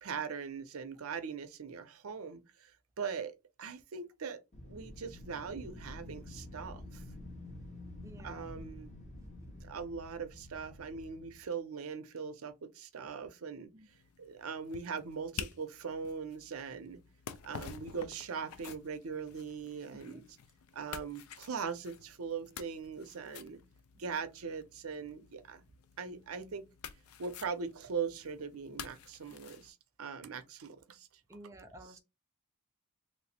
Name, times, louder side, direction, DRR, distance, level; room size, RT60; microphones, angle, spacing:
voice 1, 0.0-2.7 3.0-4.4 4.6-7.0 8.2-8.9 9.6-13.7 14.2-17.0 17.4-20.2 20.7-23.6 23.9-25.6 26.0-26.7 27.2-31.1, right 5 dB, 80° right, 0.6 m, -41 dB
Wind, 4.5-11.5, left 1 dB, 35° left, 0.8 m, -49 dB
voice 2, 8.0-8.5 13.7-13.9 20.1-20.2 31.3-32.0, right 1 dB, 15° right, 0.5 m, -51 dB
sound 1, 13.9-29.7, left 8 dB, 85° left, 0.4 m, -50 dB
3.1 x 2.0 x 4.1 m
head